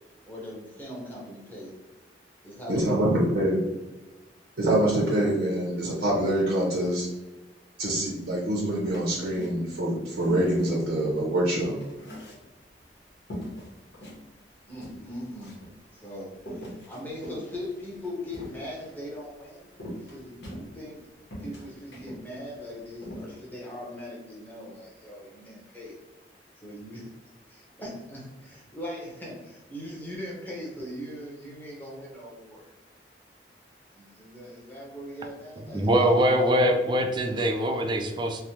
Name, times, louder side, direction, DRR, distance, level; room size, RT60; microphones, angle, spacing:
voice 1, 0.3-1.7 2.4-2.9 14.7-15.6 15.9-19.7 20.0-21.0 21.4-26.0 26.6-27.1 27.5-32.7 33.9-36.1, left 1 dB, 10° left, -4 dB, 0.8 m, -40 dB
voice 2, 2.7-3.6 4.6-7.1 7.8-11.8, right 1 dB, 75° right, -5 dB, 0.7 m, -25 dB
sound 1, 8.8-9.8 10.2-12.8 13.3-14.2 14.5-14.6 14.8-15.8 16.4-19.0 19.8-21.0 21.3-22.2 22.6-22.7 23.0-23.3, equal, 80° left, 1.1 m, -41 dB
voice 3, 35.7-38.4, equal, 25° right, 3 dB, 0.4 m, -23 dB
3.2 x 2.1 x 2.8 m, 1.1 s
head